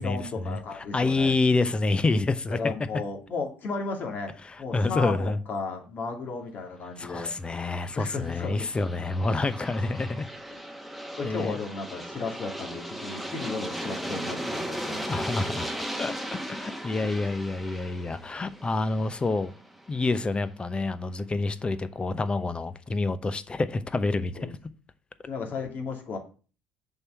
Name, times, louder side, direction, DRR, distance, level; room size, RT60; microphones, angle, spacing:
voice 1, 0.0-1.4 2.5-4.3 4.6-7.4 7.9-8.7 10.5-10.6 11.2-15.5 17.0-17.1 24.3-24.5 25.3-26.2, left 4 dB, 50° left, 2.4 m, -34 dB
voice 2, 0.9-2.7 4.7-5.4 7.0-10.3 11.2-11.6 15.1-15.7 16.0-19.5 19.9-24.3, left 3 dB, 25° left, 0.8 m, -27 dB
Aircraft, 7.4-20.3, equal, ahead, 1.3 m, -37 dB
6.6 x 4.7 x 6.8 m
hypercardioid pair, 60°, 4 cm